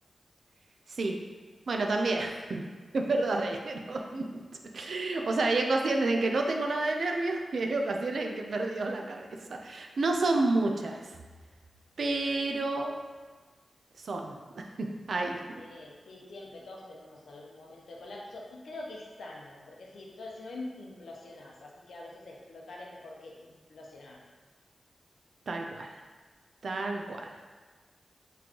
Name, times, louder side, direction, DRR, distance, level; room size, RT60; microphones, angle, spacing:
voice 1, 1.7-2.6 2.9-4.2 4.7-11.1 12.0-12.9 14.0-14.4 14.8-15.6 25.5-26.0 26.6-27.4, right 2 dB, 60° right, 2 dB, 0.4 m, -30 dB
voice 2, 15.6-24.2, left 2 dB, 80° left, -2 dB, 0.6 m, -45 dB
4.2 x 3.1 x 2.9 m, 1.4 s
wide cardioid pair, 165°, 0 cm